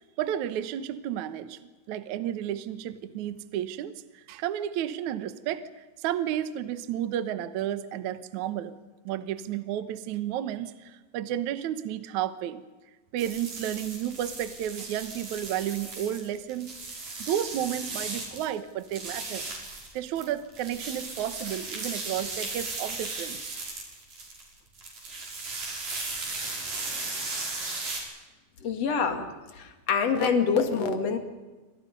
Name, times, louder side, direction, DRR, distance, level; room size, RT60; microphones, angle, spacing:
voice 1, 0.2-1.6 1.9-5.7 6.0-8.7 9.1-12.6 13.1-16.7 17.2-19.5 19.9-23.5, right 11 dB, 70° right, 12 dB, 1.8 m, -32 dB
sound 1, 13.2-18.5 18.8-28.0, right 3 dB, 50° right, 7.0 m, -36 dB
voice 2, 28.6-29.3 29.5-31.2, left 5 dB, 45° left, 6 dB, 2.8 m, -25 dB
28.0 x 26.0 x 5.4 m, 1.2 s
omnidirectional pair, 4.8 m